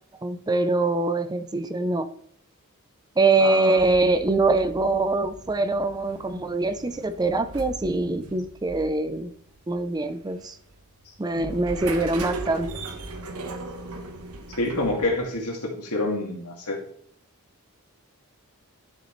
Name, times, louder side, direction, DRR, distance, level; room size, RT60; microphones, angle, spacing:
voice 1, 0.2-2.1 3.2-9.3 9.7-10.6 11.2-12.7, right 2 dB, 20° right, 11 dB, 0.5 m, -23 dB
voice 2, 3.4-3.9 14.6-16.8, left 2 dB, 90° left, 1 dB, 2.2 m, -27 dB
sound 1, 3.8-15.4, right 3 dB, 75° right, 1.1 m, -39 dB
11.0 x 6.7 x 3.1 m, 0.64 s
head